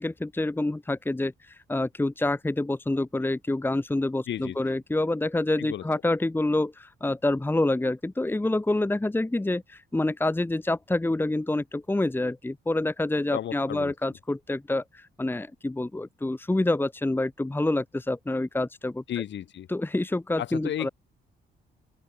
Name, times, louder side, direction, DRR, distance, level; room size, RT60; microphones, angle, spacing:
voice 1, 0.0-19.2 19.7-20.9, left 2 dB, 10° left, 1.3 m, -27 dB
voice 2, 13.3-13.9 19.1-19.7 20.4-20.9, left 11 dB, 65° left, 1.8 m, -33 dB
open air
cardioid pair, 90°, 20 cm